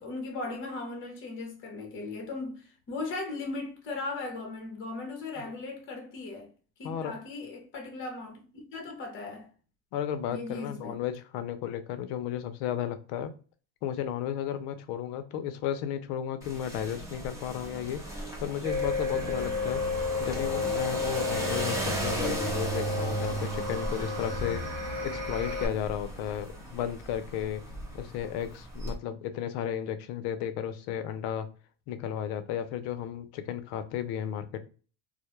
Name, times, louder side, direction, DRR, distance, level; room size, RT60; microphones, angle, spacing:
voice 1, 0.0-6.5 6.8-9.5 10.3-11.0, left 3 dB, 30° left, 0.7 m, -38 dB
voice 2, 9.9-13.3 13.8-19.8 20.2-24.6 25.0-27.6 27.9-31.5 31.9-34.7, left 9 dB, 60° left, 0.6 m, -34 dB
sound 1, 16.4-29.0, right 2 dB, 5° right, 0.7 m, -36 dB
sound 2, 18.6-25.7, left 3 dB, 35° right, 1.0 m, -32 dB
2.2 x 2.1 x 2.8 m
cardioid pair, 145°, 44 cm